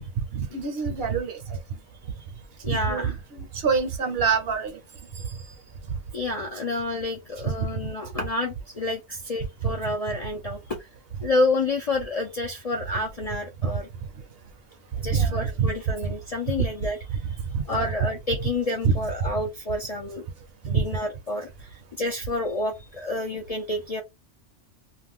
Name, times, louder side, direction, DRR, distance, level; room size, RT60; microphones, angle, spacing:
voice 1, 0.0-1.6 2.7-4.8 5.2-5.4 7.7-7.9 13.6-13.7 15.0-15.7 16.6-16.7 17.5-17.9 20.6-20.9, right 6 dB, 60° right, 0.8 m, -26 dB
voice 2, 2.6-3.2 6.1-10.9 11.2-13.9 15.0-17.0 17.3-17.4 17.7-20.3 20.7-24.0, left 2 dB, 45° left, 0.5 m, -29 dB
2.5 x 2.2 x 3.4 m
omnidirectional pair, 1.2 m